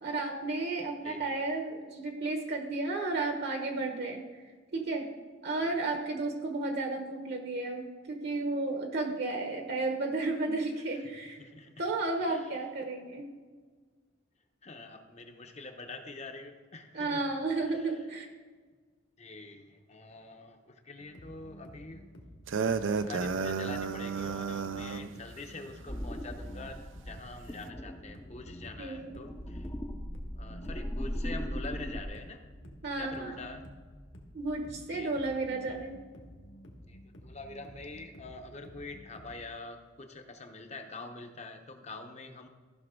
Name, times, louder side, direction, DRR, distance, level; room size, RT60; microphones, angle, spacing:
voice 1, 0.0-4.4 4.7-5.1 5.4-11.4 11.8-13.3 16.9-18.3 28.8-29.1 32.8-33.4 34.3-36.0, right 3 dB, 55° right, 3 dB, 1.0 m, -33 dB
voice 2, 11.4-11.7 12.3-12.4 14.6-17.2 17.7-18.0 19.2-22.0 23.0-29.7 30.4-32.4 33.0-33.6 34.9-35.2 36.9-42.5, left 3 dB, 35° left, 5 dB, 0.8 m, -45 dB
sound 1, 21.0-39.4, equal, 65° left, 1.5 m, -52 dB
sound 2, 22.5-25.1, right 5 dB, 75° right, 0.5 m, -32 dB
sound 3, 25.9-32.0, equal, 10° left, 0.5 m, -39 dB
14.5 x 5.9 x 3.7 m, 1.4 s
head